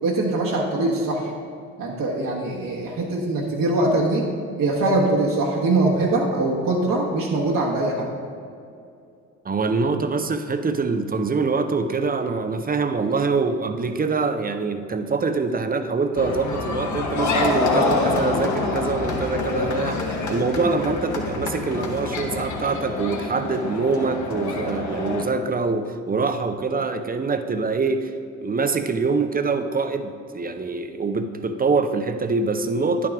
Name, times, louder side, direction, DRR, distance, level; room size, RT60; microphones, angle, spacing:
voice 1, 0.0-1.3 1.8-4.3 4.6-8.1, right 2 dB, 55° right, -2 dB, 1.4 m, -22 dB
voice 2, 9.4-28.1 28.4-33.1, right 4 dB, 25° right, 8 dB, 0.7 m, -24 dB
sound 1, 16.2-25.2, left 3 dB, 50° left, 1.4 m, -26 dB
10.5 x 6.0 x 3.6 m, 2.4 s
hypercardioid pair, 45°, 39 cm